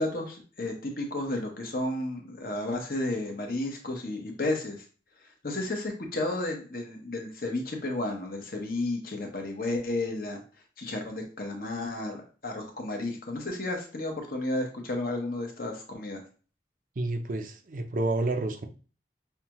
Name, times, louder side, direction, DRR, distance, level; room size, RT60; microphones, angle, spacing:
voice 1, 0.0-4.8 5.4-10.4 10.8-16.2, left 2 dB, 55° left, 2 dB, 0.9 m, -32 dB
voice 2, 17.0-18.6, right 2 dB, 50° right, 6 dB, 0.5 m, -29 dB
5.6 x 2.3 x 3.0 m, 0.37 s
head